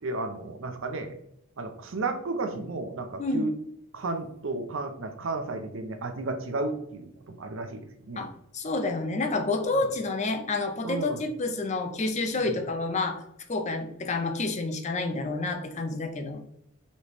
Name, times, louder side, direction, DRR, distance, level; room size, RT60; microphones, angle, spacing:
voice 1, 0.0-1.2 1.6-3.5 3.9-8.2 9.7-9.9 10.8-11.2 12.3-12.6, right 3 dB, 60° right, 7 dB, 0.6 m, -33 dB
voice 2, 8.5-13.2 13.5-16.4, left 3 dB, 30° left, 6 dB, 0.5 m, -29 dB
4.1 x 3.4 x 3.0 m, 0.76 s
head